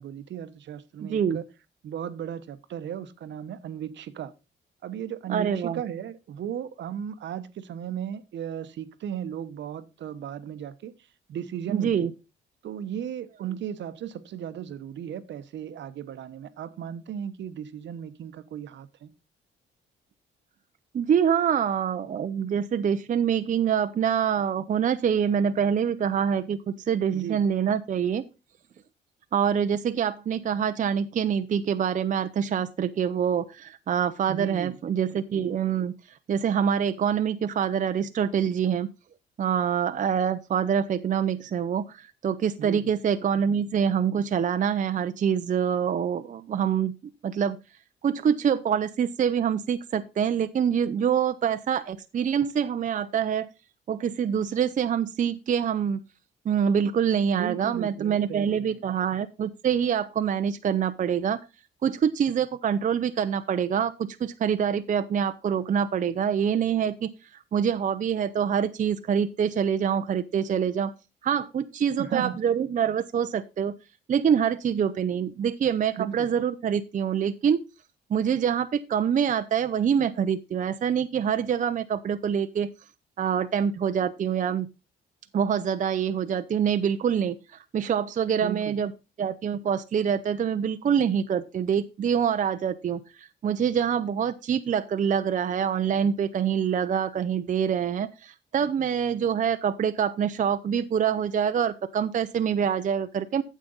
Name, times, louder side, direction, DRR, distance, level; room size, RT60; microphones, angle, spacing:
voice 1, 0.0-1.4 1.8-4.3 4.8-10.9 11.3-12.1 12.6-19.1 27.1-27.4 34.3-34.8 42.6-42.9 57.3-58.8 72.0-72.4 76.0-76.3 88.4-88.8, right 9 dB, 65° right, 0.9 m, -35 dB
voice 2, 1.0-1.4 5.3-5.8 11.7-12.1 20.9-28.3 29.3-35.9 36.3-38.9 39.4-46.9 47.2-47.6 48.0-53.5 53.9-56.0 56.5-61.4 61.8-70.9 71.2-73.7 74.1-77.6 78.1-82.7 83.2-84.7 85.3-88.9 89.2-103.4, right 8 dB, 40° right, 0.5 m, -25 dB
8.8 x 7.4 x 3.9 m
cardioid pair, 90°, 20 cm